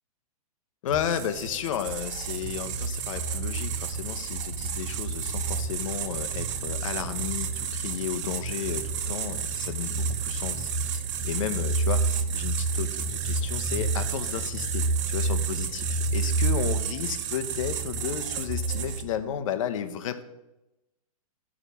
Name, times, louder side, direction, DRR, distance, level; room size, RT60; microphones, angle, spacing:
voice 1, 0.8-20.2, left 9 dB, 60° left, 10 dB, 0.8 m, -33 dB
sound 1, 0.9-19.2, right 4 dB, 55° right, 0.8 m, -29 dB
10.5 x 4.9 x 5.6 m, 0.97 s
hypercardioid pair, 130°, 19 cm